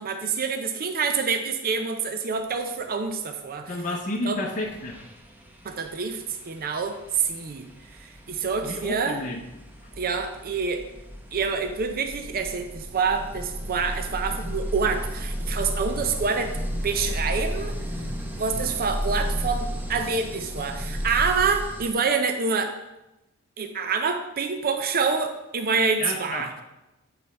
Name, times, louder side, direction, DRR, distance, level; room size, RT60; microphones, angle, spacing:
voice 1, 0.0-3.7 4.2-4.4 5.6-7.6 8.3-9.2 10.0-10.8 11.3-16.6 16.8-17.7 18.4-22.7 23.6-26.5, right 5 dB, 40° right, 5 dB, 0.6 m, -27 dB
voice 2, 3.7-5.0 8.6-9.4 26.0-26.5, left 2 dB, 35° left, 0 dB, 0.7 m, -30 dB
sound 1, 4.1-4.3 4.6-21.9, equal, 10° right, 0.8 m, -34 dB
8.2 x 4.3 x 5.4 m, 0.96 s
head